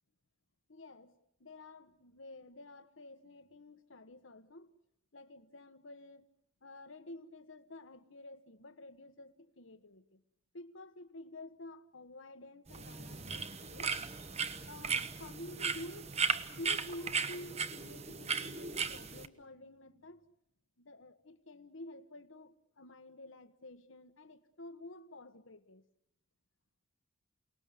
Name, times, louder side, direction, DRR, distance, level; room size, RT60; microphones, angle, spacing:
voice 1, 0.7-4.7 5.1-6.3 6.6-10.2 10.5-14.0 14.7-16.1 16.5-20.3 20.8-25.8, left 1 dB, 75° left, 1.4 m, -50 dB
sound 1, 12.7-19.3, right 5 dB, 30° right, 1.0 m, -37 dB
29.0 x 19.5 x 8.3 m
head